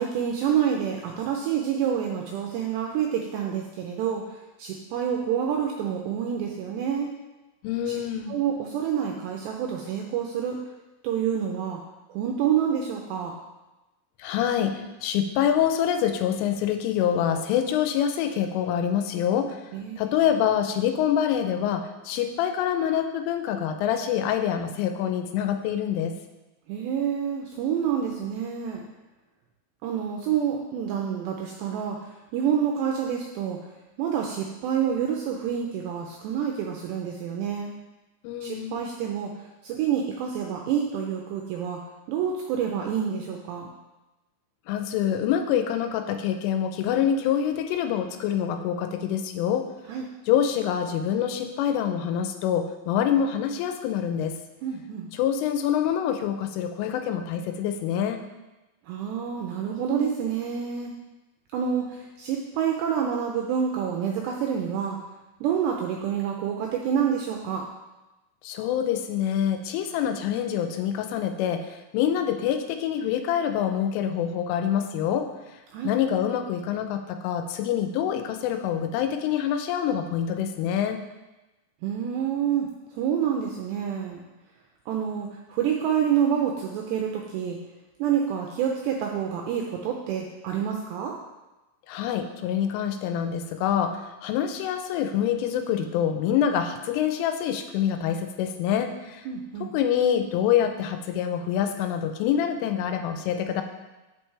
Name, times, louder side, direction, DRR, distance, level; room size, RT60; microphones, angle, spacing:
voice 1, 0.0-4.2 4.6-7.1 7.9-8.0 8.3-10.6 11.0-11.8 12.1-13.3 19.7-20.1 26.7-28.8 29.8-32.0 32.3-33.6 34.0-37.7 38.4-39.3 39.6-41.8 42.1-43.7 49.9-50.1 54.6-55.1 58.9-60.9 61.5-65.0 65.4-67.7 75.7-75.9 81.8-82.7 83.0-84.2 84.9-87.6 88.0-91.2 99.3-99.7, right 8 dB, 90° right, 1 dB, 2.5 m, -27 dB
voice 2, 7.6-8.4 14.2-19.6 20.0-26.1 38.2-38.9 44.7-49.7 50.3-54.4 55.1-58.2 68.4-75.3 75.8-81.0 91.9-99.3 99.7-103.6, left 9 dB, 90° left, 7 dB, 3.2 m, -26 dB
7.9 x 7.9 x 3.3 m, 1.1 s
omnidirectional pair, 5.6 m